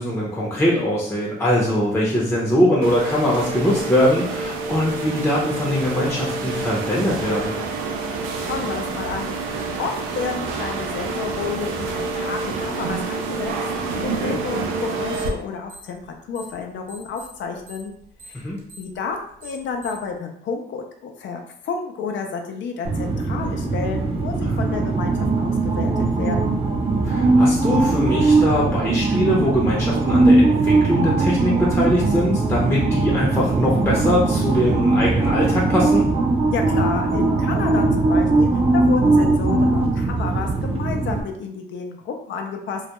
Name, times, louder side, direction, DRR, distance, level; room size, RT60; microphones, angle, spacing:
voice 1, 0.0-7.5 14.2-14.4 18.3-18.6 24.4-24.9 27.0-36.0, left 1 dB, 15° left, -5 dB, 0.6 m, -22 dB
sound 1, 2.8-15.3, right 3 dB, 90° right, 0.4 m, -28 dB
voice 2, 8.4-13.5 13.8-17.9 18.2-18.4 18.8-26.6 36.5-42.8, left 5 dB, 70° left, 3 dB, 0.5 m, -30 dB
sound 2, 15.1-15.4 15.6-16.6 16.9-20.1, right 2 dB, 60° right, 0.9 m, -43 dB
sound 3, 22.8-41.2, right 3 dB, 30° right, 0.4 m, -20 dB
2.3 x 2.1 x 2.9 m, 0.68 s
cardioid pair, 90°, 20 cm